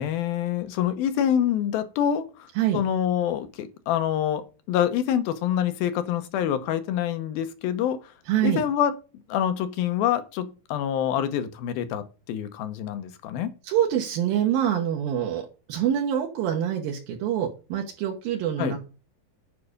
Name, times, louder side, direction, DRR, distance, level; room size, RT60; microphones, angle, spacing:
voice 1, 0.0-8.1 8.4-8.9 9.3-13.5 18.6-18.7, left 10 dB, 80° left, 2.8 m, -26 dB
voice 2, 8.3-8.6 13.6-18.9, right 10 dB, 80° right, 2.9 m, -25 dB
9.4 x 4.9 x 6.6 m
omnidirectional pair, 4.3 m